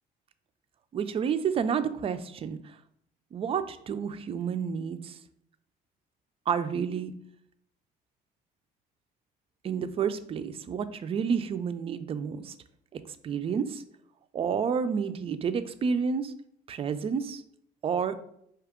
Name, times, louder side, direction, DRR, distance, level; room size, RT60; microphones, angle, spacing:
voice 1, 0.9-2.6 3.3-5.2 6.5-7.1 9.6-12.5 12.9-13.8 14.3-16.3 16.7-17.4 17.8-18.2, right 6 dB, 35° right, 11 dB, 0.4 m, -30 dB
4.7 x 2.8 x 3.5 m, 0.72 s
cardioid pair, 110°, 17 cm